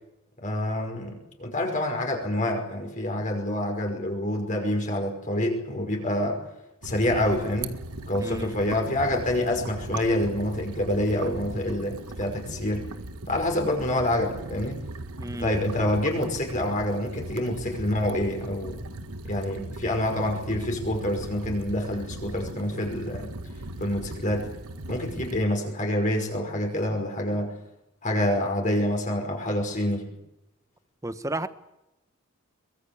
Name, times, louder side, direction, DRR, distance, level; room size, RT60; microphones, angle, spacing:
voice 1, 0.4-6.4 6.8-7.7 8.1-12.9 13.3-14.8 15.4-18.8 19.2-23.3 23.8-24.5 24.9-27.6 28.0-30.1, left 1 dB, 35° left, 5.5 m, -27 dB
sound 1, 6.8-25.5, right 2 dB, 85° right, 1.7 m, -38 dB
voice 2, 8.2-8.5 15.2-15.6 31.0-31.5, right 1 dB, 15° right, 1.2 m, -32 dB
23.5 x 21.0 x 8.7 m
head